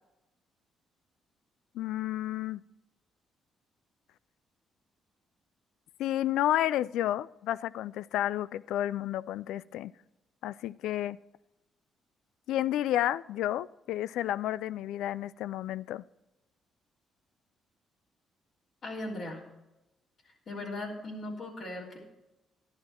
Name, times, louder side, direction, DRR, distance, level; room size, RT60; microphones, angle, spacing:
voice 1, 1.7-2.6 6.0-9.9 10.4-11.2 12.5-16.0, left 13 dB, 85° left, 0.3 m, -31 dB
voice 2, 18.8-19.4 20.5-22.0, left 1 dB, 55° left, 3.3 m, -38 dB
11.5 x 10.5 x 4.4 m
cardioid pair, 90°, 0 cm